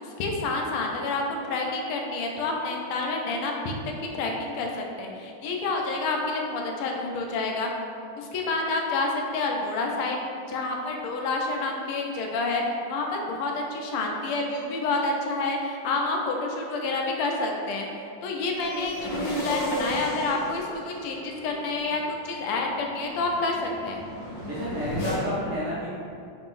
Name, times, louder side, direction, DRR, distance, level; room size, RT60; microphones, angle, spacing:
voice 1, 0.2-3.7 4.1-7.7 8.2-10.2 10.5-12.6 12.9-17.8 18.2-24.0, left 3 dB, 85° left, 1 dB, 1.5 m, -28 dB
sound 1, 18.5-25.2, equal, 65° left, 1.4 m, -35 dB
voice 2, 24.5-25.9, equal, 65° right, -9 dB, 1.0 m, -30 dB
3.9 x 2.5 x 3.6 m, 2.4 s
omnidirectional pair, 2.3 m